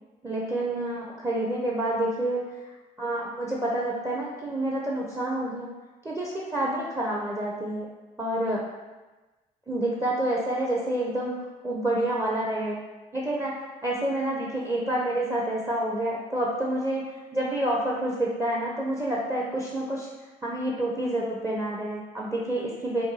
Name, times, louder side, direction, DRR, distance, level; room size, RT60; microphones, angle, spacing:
voice 1, 0.2-2.4 3.0-5.7 6.0-7.9 8.2-8.6 9.7-11.4 11.6-12.8 13.1-13.5 13.8-17.0 17.3-20.1 20.4-23.0, right 1 dB, 15° right, -3 dB, 0.5 m, -28 dB
2.6 x 2.3 x 2.9 m, 1.2 s
hypercardioid pair, 45°, 20 cm